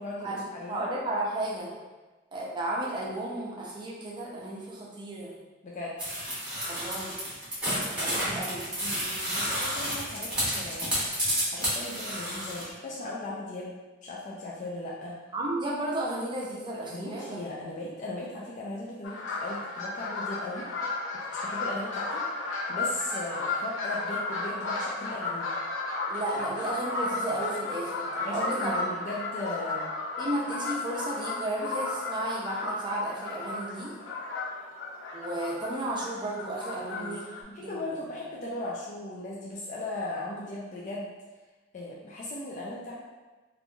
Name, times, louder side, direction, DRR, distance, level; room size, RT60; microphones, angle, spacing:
voice 1, 0.0-0.8 5.6-5.9 8.8-10.9 11.5-13.8 14.0-15.2 16.9-20.7 21.3-22.2 22.7-25.5 28.3-29.9 36.8-41.1 41.7-42.9, left 2 dB, 40° left, -5 dB, 0.3 m, -37 dB
voice 2, 0.7-1.7 2.3-5.4 6.7-7.2 8.0-8.7 15.3-17.4 26.1-28.8 30.2-33.9 35.1-37.2 37.6-37.7, right 1 dB, 25° right, -4 dB, 0.5 m, -33 dB
sound 1, 6.0-12.6, equal, 5° right, 0.8 m, -30 dB
sound 2, 19.0-37.4, left 3 dB, 80° left, 0.6 m, -34 dB
3.1 x 2.5 x 2.3 m, 1.2 s
head